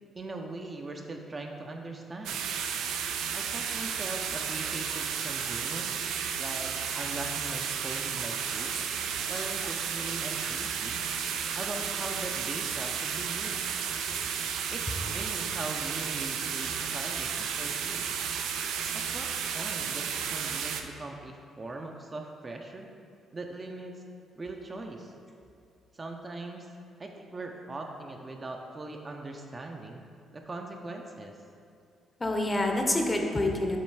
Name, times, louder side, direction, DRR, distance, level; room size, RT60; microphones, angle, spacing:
voice 1, 0.1-2.4 3.3-6.0 6.4-8.8 9.3-11.0 11.6-13.7 14.7-18.1 18.9-22.9 23.3-24.0 24.4-25.1 25.9-26.7 27.0-30.0 30.3-31.4, right 2 dB, 30° right, 2 dB, 0.5 m, -40 dB
sound 1, 2.2-20.8, right 7 dB, 90° right, 0.4 m, -33 dB
voice 2, 32.2-33.8, left 1 dB, 20° left, 2 dB, 0.7 m, -28 dB
7.3 x 3.1 x 4.7 m, 2.4 s
cardioid pair, 90°, 0 cm